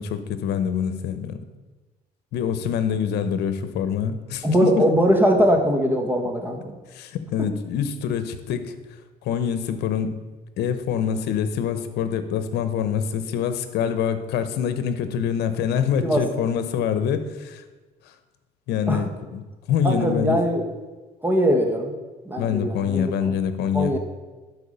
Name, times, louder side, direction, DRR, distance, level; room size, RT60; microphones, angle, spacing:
voice 1, 0.0-1.4 2.3-4.8 6.9-8.7 9.2-10.1 10.6-17.6 18.7-19.4 19.7-20.4 22.4-24.0, left 8 dB, 75° left, 10 dB, 0.9 m, -25 dB
voice 2, 4.4-6.7 16.0-16.2 18.9-19.0 19.8-20.7 21.2-21.9 22.2-23.3 23.7-24.0, equal, 10° right, 3 dB, 1.5 m, -21 dB
11.5 x 4.8 x 5.5 m, 1.3 s
cardioid pair, 110°, 17 cm